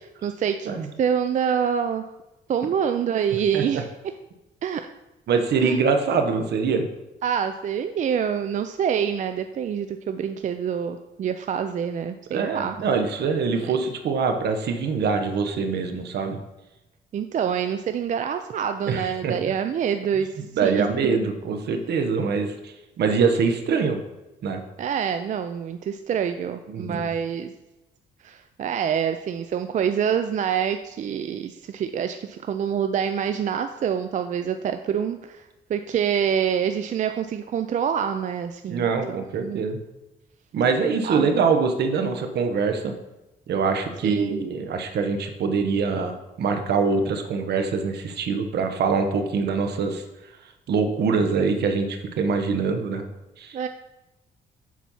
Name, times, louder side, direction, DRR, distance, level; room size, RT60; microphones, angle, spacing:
voice 1, 0.2-0.7 1.0-2.0 2.5-3.9 4.6-4.8 5.6-5.8 7.2-12.8 13.5-13.7 17.1-20.3 20.6-20.9 24.8-27.5 28.2-39.6 41.0-41.3 44.0-44.4 53.5-53.7, right 8 dB, 45° right, 8 dB, 0.4 m, -26 dB
voice 2, 5.3-6.9 12.3-16.4 18.9-19.3 20.5-24.0 24.4-24.6 26.7-27.1 38.7-39.8 40.5-42.9 43.5-50.0 50.7-53.0 53.4-53.6, right 5 dB, 70° right, 6 dB, 1.0 m, -24 dB
7.3 x 4.2 x 5.5 m, 0.99 s
cardioid pair, 110°, 18 cm